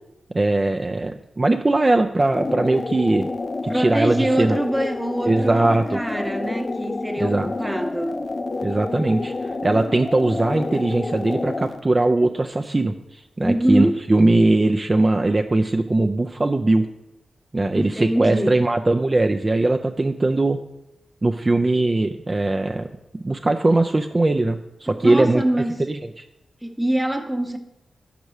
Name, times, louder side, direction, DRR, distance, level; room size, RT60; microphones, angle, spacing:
voice 1, 0.3-3.3 3.6-4.6 5.2-6.0 7.2-7.5 8.6-16.9 17.5-20.6 21.2-22.9 23.2-25.4 25.9-26.3, right 2 dB, 35° right, 0.5 m, -20 dB
sound 1, 2.2-11.8, left 3 dB, 40° left, 0.5 m, -29 dB
voice 2, 3.7-8.3 13.4-14.0 17.7-18.6 24.9-25.8 26.6-27.6, right 1 dB, 10° right, 1.0 m, -24 dB
5.9 x 5.4 x 6.4 m
cardioid pair, 50°, 0 cm